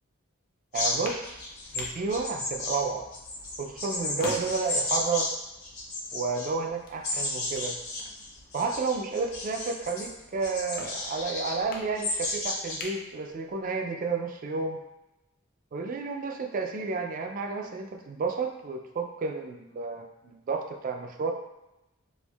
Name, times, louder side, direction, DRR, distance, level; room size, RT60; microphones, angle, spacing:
sound 1, 0.7-5.3 5.6-6.5 7.0-10.1 10.4-11.6 12.0-12.8, left 2 dB, 85° left, 1.1 m, -33 dB
sound 2, 0.7-13.8, left 2 dB, 45° left, 0.5 m, -46 dB
voice 1, 0.7-1.4 1.7-3.1 3.6-5.3 6.1-7.8 8.5-14.8 15.7-21.3, right 4 dB, 40° right, 4 dB, 0.3 m, -31 dB
4.3 x 2.5 x 2.3 m, 0.95 s
head